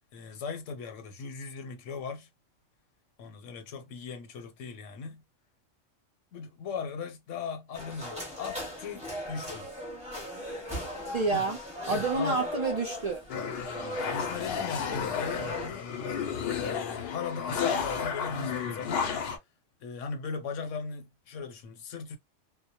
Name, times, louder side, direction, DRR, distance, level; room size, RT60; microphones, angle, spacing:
voice 1, 0.1-2.3 3.2-5.2 6.3-9.7 11.3-11.5 11.9-12.4 13.7-15.9 16.5-19.1 19.8-22.2, left 5 dB, 85° left, 1.0 m, -38 dB
sound 1, 7.7-15.7, equal, 5° right, 0.8 m, -39 dB
voice 2, 10.9-11.6 11.9-13.2, right 3 dB, 50° right, 0.4 m, -29 dB
sound 2, 13.3-19.4, left 6 dB, 65° left, 0.7 m, -32 dB
2.2 x 2.0 x 2.7 m
omnidirectional pair, 1.2 m